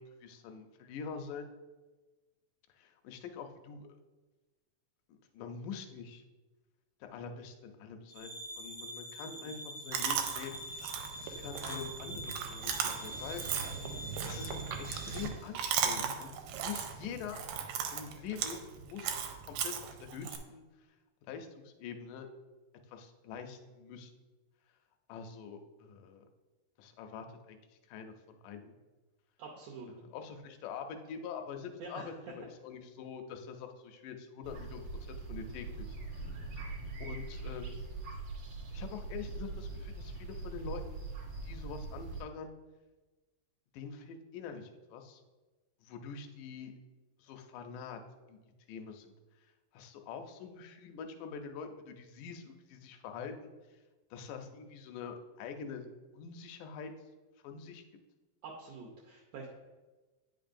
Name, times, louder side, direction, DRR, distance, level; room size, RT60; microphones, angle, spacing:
voice 1, 0.0-1.5 2.8-3.9 5.3-6.2 7.0-10.6 11.2-13.4 14.2-14.6 14.9-16.3 16.6-17.4 17.9-19.2 19.4-20.6 21.3-22.3 22.9-24.1 25.1-26.2 26.8-27.6 27.9-28.8 29.9-34.8 35.1-36.5 37.0-37.9 38.7-40.8 41.4-42.5 43.7-45.2 45.8-46.7 47.2-48.0 48.3-48.4 48.7-49.1 49.7-53.5 54.1-55.9 56.1-56.9 57.4-57.8, left 6 dB, 80° left, 5 dB, 1.9 m, -45 dB
sound 1, 8.1-15.2, equal, 50° left, 0.8 m, -45 dB
Chewing mastication, 9.9-20.4, right 7 dB, 90° right, 2.4 m, -37 dB
voice 2, 29.4-29.9 31.8-32.3 58.4-59.5, right 4 dB, 75° right, -3 dB, 2.0 m, -47 dB
sound 2, 34.4-42.2, right 3 dB, 55° right, 1.7 m, -42 dB
9.1 x 5.3 x 2.5 m, 1.2 s
omnidirectional pair, 4.1 m